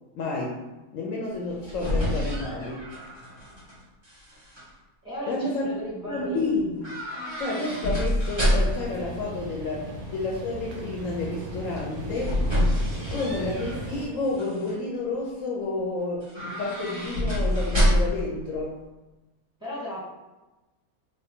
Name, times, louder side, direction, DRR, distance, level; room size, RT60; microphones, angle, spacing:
voice 1, 0.1-0.6 0.9-2.9 5.3-5.7 6.1-6.9 7.4-12.4 13.1-18.8, left 2 dB, 70° left, -2 dB, 0.9 m, -30 dB
sound 1, 1.3-3.7 4.0-4.6 6.8-8.9 11.7-13.8 14.2-14.7 16.2-18.3 18.6-18.7, equal, 20° right, 1.6 m, -27 dB
voice 2, 5.0-6.5 9.8-10.0 19.6-20.0, equal, 5° right, -9 dB, 1.3 m, -35 dB
sound 2, 8.4-14.1, right 1 dB, 80° right, 1.2 m, -37 dB
3.8 x 2.3 x 3.6 m, 1.1 s
omnidirectional pair, 1.6 m